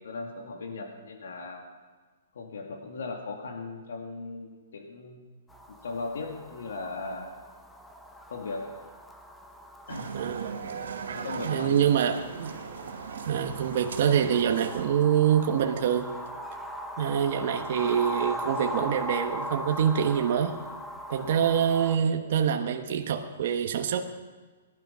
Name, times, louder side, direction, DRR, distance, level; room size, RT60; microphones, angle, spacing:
voice 1, 0.0-1.7 2.3-5.3 5.7-7.3 8.3-8.7 9.9-10.1 11.1-12.0 21.2-21.4, left 3 dB, 85° left, 3 dB, 2.1 m, -38 dB
sound 1, 5.5-22.0, equal, 5° left, 0.7 m, -39 dB
sound 2, 9.9-14.9, right 6 dB, 85° right, 3.3 m, -38 dB
voice 2, 10.1-10.6 11.4-12.5 13.3-16.1 17.0-20.6 21.1-24.0, right 8 dB, 50° right, 4 dB, 1.2 m, -25 dB
19.0 x 12.0 x 5.7 m, 1.4 s
hypercardioid pair, 170°, 0 cm